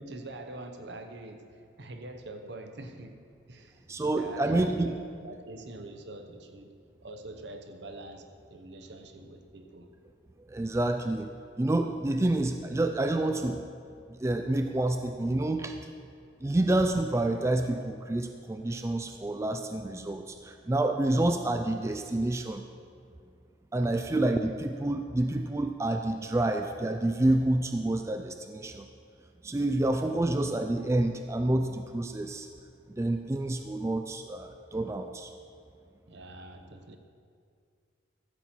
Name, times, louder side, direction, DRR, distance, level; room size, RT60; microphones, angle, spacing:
voice 1, 0.0-1.5 1.8-3.2 3.5-3.9 4.1-5.0 5.2-6.7 7.0-9.9 23.8-24.2 30.0-30.4 36.1-37.0, right 2 dB, 70° right, 6 dB, 0.9 m, -44 dB
voice 2, 3.9-4.9 10.5-11.3 11.6-13.6 14.1-15.8 16.4-22.6 23.7-28.9 29.4-32.5 32.9-35.3, right 1 dB, 15° right, 6 dB, 0.3 m, -28 dB
13.5 x 7.4 x 4.4 m, 2.2 s
head